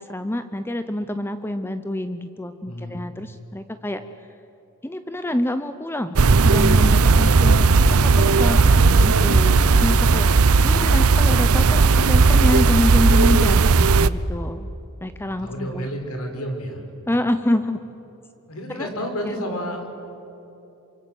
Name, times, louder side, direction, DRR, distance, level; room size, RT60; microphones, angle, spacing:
voice 1, 0.0-4.0 4.8-6.2 6.4-14.7 15.0-15.9 17.1-17.8 18.7-18.9, left 1 dB, 10° left, 10 dB, 0.7 m, -27 dB
voice 2, 2.6-3.0 15.2-16.8 18.5-19.9, equal, 75° left, 4 dB, 5.1 m, -30 dB
sound 1, 6.2-14.1, right 4 dB, 75° right, 0.7 m, -16 dB
27.5 x 25.0 x 7.7 m, 3.0 s
head